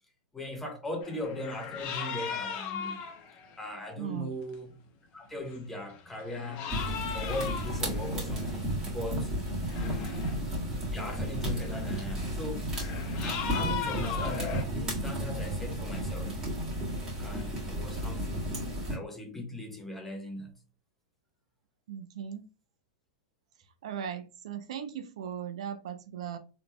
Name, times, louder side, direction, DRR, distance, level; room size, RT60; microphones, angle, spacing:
voice 1, 0.3-3.0 3.6-4.8 5.1-6.7 7.1-9.3 9.7-10.3 10.9-12.7 13.1-16.4 17.2-20.6, left 1 dB, 5° left, 1.0 m, -39 dB
sound 1, 1.0-3.6 4.5-4.6 5.4-5.7 5.9-9.0 9.5-10.4 10.7-14.6, left 7 dB, 40° left, 0.8 m, -38 dB
voice 2, 4.0-4.3 9.9-10.2 13.4-13.8 21.9-22.4 23.8-26.4, right 9 dB, 70° right, 0.5 m, -38 dB
sound 2, 6.7-19.0, equal, 20° right, 1.7 m, -33 dB
3.9 x 3.3 x 2.2 m
hypercardioid pair, 130°, 3 cm